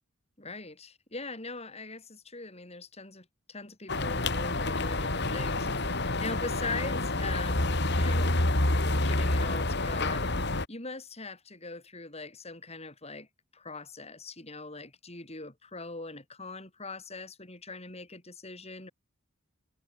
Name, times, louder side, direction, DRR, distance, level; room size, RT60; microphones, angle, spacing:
voice 1, 0.4-8.4 9.0-13.3 13.5-18.9, left 3 dB, 30° left, 7.5 m, -41 dB
sound 1, 3.9-10.6, left 2 dB, 60° left, 3.5 m, -28 dB
head